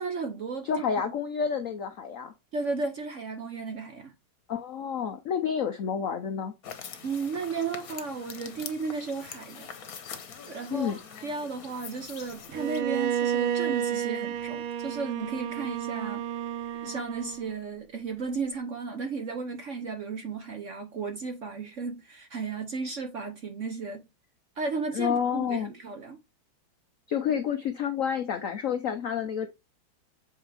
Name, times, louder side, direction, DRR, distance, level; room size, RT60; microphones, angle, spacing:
voice 1, 0.0-0.8 2.5-4.1 7.0-9.7 10.5-16.2 16.8-24.0 24.6-26.2, right 4 dB, 55° right, 0.9 m, -34 dB
voice 2, 0.6-2.3 4.5-6.5 10.7-11.0 24.9-25.7 27.1-29.5, left 7 dB, 70° left, 0.7 m, -29 dB
sound 1, 6.6-12.8, left 7 dB, 55° left, 1.3 m, -44 dB
Bowed string instrument, 12.5-17.5, right 9 dB, 80° right, 1.4 m, -31 dB
7.7 x 4.4 x 3.3 m
omnidirectional pair, 2.2 m